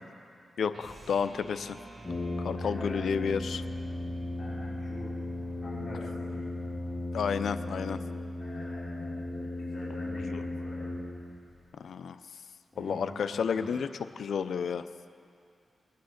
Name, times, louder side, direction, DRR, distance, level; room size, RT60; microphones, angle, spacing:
voice 1, 0.6-1.8 2.4-3.6 7.1-8.0 10.3-10.4 11.8-12.2 12.8-13.9 14.2-14.9, left 6 dB, 80° left, 12 dB, 0.5 m, -31 dB
sound 1, 0.7-7.1, right 2 dB, 40° right, 2.4 m, -50 dB
Brass instrument, 2.0-11.5, left 2 dB, 40° left, 2.1 m, -36 dB
voice 2, 2.6-3.1 4.0-5.1 5.6-6.5 8.4-10.9 12.7-13.8, left 1 dB, 25° left, -9 dB, 3.6 m, -45 dB
21.5 x 9.3 x 6.5 m, 2.4 s
wide cardioid pair, 95°, 0 cm